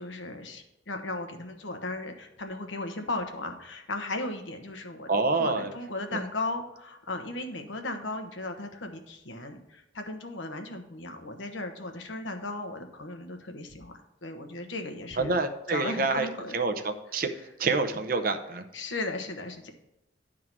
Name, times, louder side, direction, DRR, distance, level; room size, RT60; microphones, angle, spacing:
voice 1, 0.0-5.1 5.4-13.9 14.2-15.4 15.7-16.5 18.7-19.7, left 2 dB, 80° left, 5 dB, 1.1 m, -36 dB
voice 2, 5.1-5.7 15.2-16.3 16.5-17.3 17.6-18.6, right 3 dB, 50° right, 7 dB, 0.7 m, -27 dB
11.0 x 3.7 x 6.0 m, 0.86 s
head